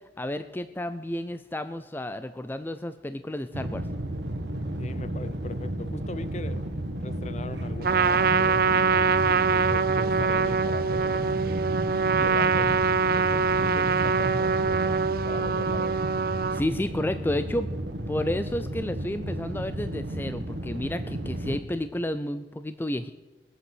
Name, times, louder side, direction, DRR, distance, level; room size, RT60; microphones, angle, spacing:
voice 1, 0.2-3.9 16.5-17.7 18.0-23.1, left 1 dB, 10° left, 0.4 m, -31 dB
sound 1, 3.5-21.6, right 1 dB, 90° right, 1.8 m, -33 dB
voice 2, 4.8-6.7 7.0-11.7 12.2-12.8 13.1-16.0, left 2 dB, 40° left, 0.8 m, -40 dB
Trumpet, 7.8-16.6, right 5 dB, 55° right, 0.5 m, -24 dB
20.5 x 8.1 x 8.0 m
head